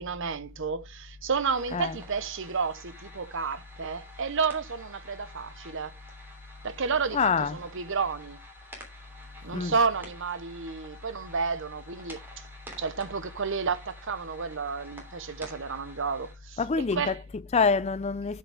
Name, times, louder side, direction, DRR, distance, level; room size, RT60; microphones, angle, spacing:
voice 1, 0.0-5.9 6.6-8.4 9.4-12.2 12.8-16.6 16.9-17.1, right 5 dB, 60° right, 0.9 m, -31 dB
sound 1, 1.5-16.3, equal, 10° right, 3.1 m, -50 dB
voice 2, 7.1-7.6 9.5-9.7 16.6-18.4, left 5 dB, 30° left, 0.4 m, -26 dB
12.5 x 5.7 x 3.3 m
head